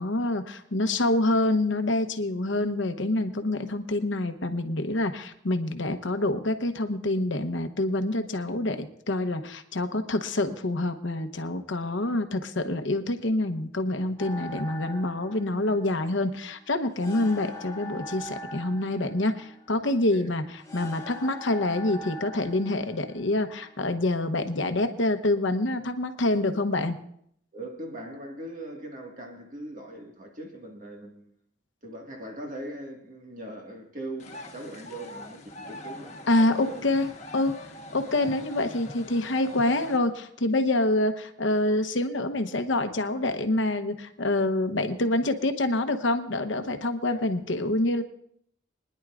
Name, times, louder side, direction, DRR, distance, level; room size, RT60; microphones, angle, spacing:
voice 1, 0.0-20.4 20.7-27.0 36.3-37.6 37.9-48.0, left 2 dB, 70° left, 1.0 m, -26 dB
sound 1, 14.2-24.2, left 1 dB, 15° left, 1.4 m, -42 dB
voice 2, 27.5-31.3 31.8-36.8 47.0-47.2, right 1 dB, 40° right, 1.8 m, -40 dB
sound 2, 34.2-40.0, left 1 dB, 35° left, 1.3 m, -43 dB
24.5 x 10.5 x 2.5 m
head